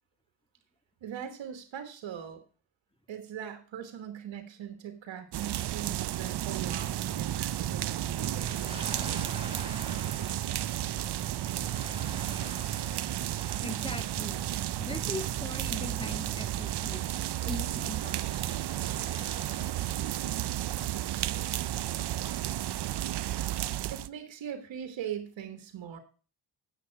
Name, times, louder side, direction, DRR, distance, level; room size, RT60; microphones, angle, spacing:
voice 1, 1.0-2.4 3.1-8.7 23.9-26.0, right 9 dB, 85° right, 8 dB, 1.3 m, -41 dB
sound 1, 5.3-24.1, right 13 dB, 60° right, 0.5 m, -33 dB
sound 2, 6.6-16.8, right 7 dB, 35° right, 3.2 m, -43 dB
sound 3, 8.0-22.3, right 1 dB, 10° right, 3.4 m, -48 dB
voice 2, 13.6-14.4 14.8-17.0 17.4-18.5, left 1 dB, 10° left, 7 dB, 1.7 m, -40 dB
8.3 x 7.1 x 4.5 m, 0.37 s
cardioid pair, 55°, 44 cm